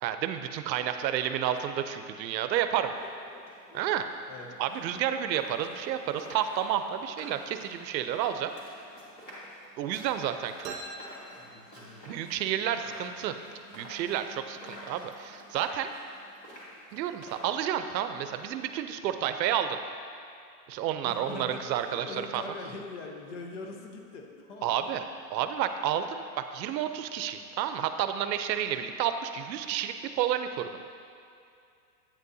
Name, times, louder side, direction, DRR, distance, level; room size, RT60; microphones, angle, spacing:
voice 1, 0.0-2.9 3.7-4.1 4.6-8.5 9.8-10.7 12.1-13.3 13.7-15.9 16.9-19.8 20.7-22.1 22.3-22.4 24.6-25.0 25.3-30.9, right 10 dB, 85° right, 8 dB, 0.6 m, -30 dB
sound 1, 2.7-18.7, equal, 20° left, 1.4 m, -50 dB
voice 2, 2.9-3.4 3.7-4.0 4.3-4.5 11.4-12.6 21.0-24.9 25.4-25.5, left 3 dB, 45° left, 2 dB, 0.8 m, -43 dB
sound 2, 10.6-12.3, right 2 dB, 40° right, 0.9 m, -45 dB
8.6 x 8.2 x 2.7 m, 2.5 s
supercardioid pair, 170°, 50 cm